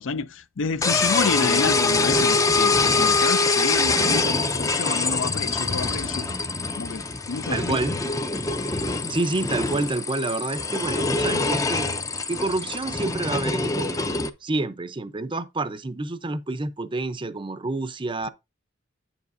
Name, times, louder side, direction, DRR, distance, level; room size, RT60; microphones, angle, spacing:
voice 1, 0.0-6.3 6.8-7.8, left 4 dB, 65° left, 0.5 m, -29 dB
sound 1, 0.8-14.3, left 3 dB, 15° left, 0.5 m, -24 dB
voice 2, 1.4-1.8 7.5-8.0 9.1-11.9 12.3-18.3, right 2 dB, 25° right, 0.6 m, -28 dB
8.8 x 7.2 x 2.6 m
head